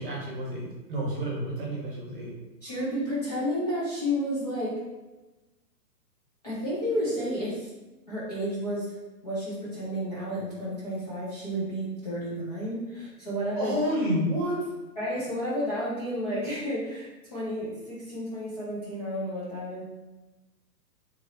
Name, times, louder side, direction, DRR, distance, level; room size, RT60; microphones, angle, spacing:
voice 1, 0.0-2.3 13.6-14.6, equal, 30° right, -4 dB, 0.9 m, -29 dB
voice 2, 2.6-4.8 6.4-7.7 8.1-9.0 9.2-13.7 15.0-19.8, equal, 25° left, -9 dB, 0.6 m, -31 dB
3.1 x 2.6 x 3.8 m, 1.1 s
hypercardioid pair, 165°, 49 cm